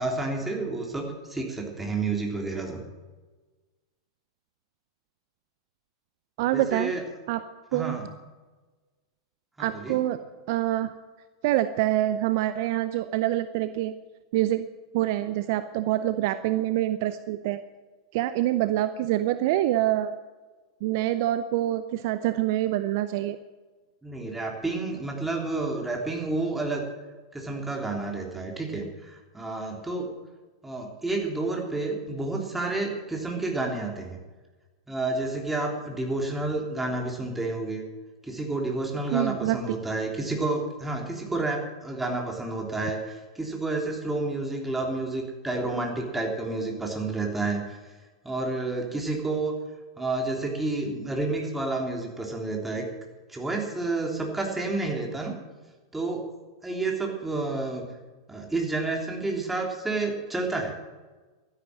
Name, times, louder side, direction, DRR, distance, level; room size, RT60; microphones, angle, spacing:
voice 1, 0.0-2.8 6.5-7.0 7.7-8.1 9.6-10.0 24.0-26.8 27.3-30.1 30.6-34.2 34.9-37.8 38.2-47.8 48.2-49.6 50.0-52.9 53.3-55.3 55.9-56.2 56.6-57.8 58.3-60.8, right 2 dB, 10° right, 0 dB, 3.4 m, -30 dB
voice 2, 6.4-6.9 7.3-7.4 7.7-8.0 9.6-10.2 10.5-10.9 11.4-13.9 14.3-14.7 14.9-17.6 18.1-20.1 20.8-23.4 39.1-39.8, right 14 dB, 50° right, 12 dB, 0.6 m, -26 dB
12.5 x 11.0 x 7.6 m, 1.3 s
figure-of-eight pair, 95°, 2 cm